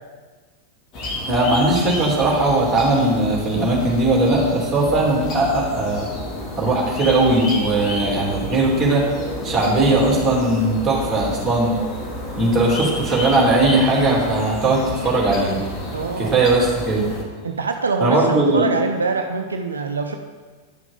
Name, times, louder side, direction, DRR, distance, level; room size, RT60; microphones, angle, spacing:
sound 1, 0.9-17.2, left 1 dB, 35° left, 2.1 m, -31 dB
voice 1, 1.3-6.1 6.6-9.0 9.4-11.8 12.4-15.6 16.2-17.1 18.0-18.7, right 2 dB, 15° right, -3 dB, 3.1 m, -19 dB
voice 2, 15.9-16.3 17.4-20.1, right 4 dB, 75° right, 5 dB, 0.5 m, -24 dB
11.0 x 6.0 x 5.2 m, 1.4 s
figure-of-eight pair, 90°, 0 cm